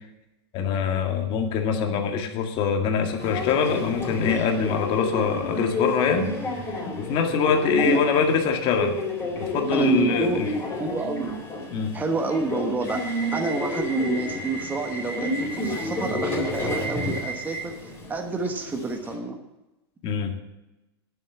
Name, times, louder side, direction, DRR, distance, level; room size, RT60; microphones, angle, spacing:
voice 1, 0.5-6.4 6.9-9.0 9.3-10.5 11.7-11.9 20.0-20.3, left 6 dB, 40° left, 3 dB, 1.9 m, -24 dB
Subway metro underground, 3.2-19.1, left 1 dB, 15° left, 3.8 m, -30 dB
voice 2, 9.7-10.4 10.8-11.3 11.9-19.4, right 4 dB, 10° right, 3 dB, 1.3 m, -28 dB
10.5 x 7.9 x 7.3 m, 0.98 s
hypercardioid pair, 135°, 14 cm